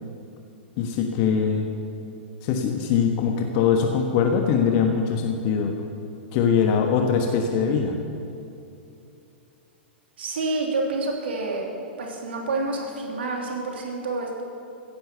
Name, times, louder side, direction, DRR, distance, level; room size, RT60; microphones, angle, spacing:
voice 1, 0.8-1.7 2.4-5.7 6.3-8.0, left 6 dB, 40° left, 3 dB, 1.3 m, -22 dB
voice 2, 10.2-11.6 12.0-14.4, right 3 dB, 65° right, 0 dB, 3.0 m, -28 dB
16.0 x 10.5 x 6.9 m, 2.7 s
figure-of-eight pair, 105°, 6 cm